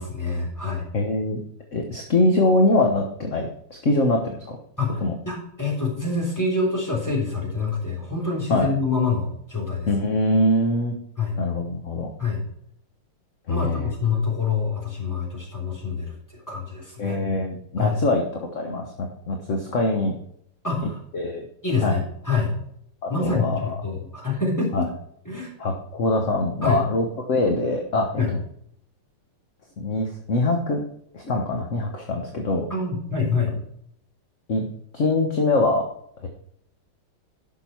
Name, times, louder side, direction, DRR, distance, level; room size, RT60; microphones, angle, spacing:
voice 1, 0.0-0.8 4.8-9.9 11.2-11.4 12.2-12.4 13.5-17.3 17.8-18.0 20.6-21.0 21.6-22.5 23.1-24.9 25.2-25.5 26.6-26.8 28.1-28.3 32.7-33.5, left 4 dB, 10° left, -2 dB, 3.3 m, -26 dB
voice 2, 0.9-1.4 1.7-4.6 5.0-5.2 8.5-8.7 9.9-10.9 11.4-12.1 13.5-13.9 17.0-20.1 21.1-21.5 21.8-22.0 23.0-23.6 24.7-24.8 25.6-28.2 29.8-30.8 31.1-32.7 34.5-34.6 34.9-35.8 36.2-36.3, left 2 dB, 40° left, 3 dB, 1.3 m, -23 dB
12.0 x 6.2 x 4.6 m, 0.69 s
omnidirectional pair, 2.4 m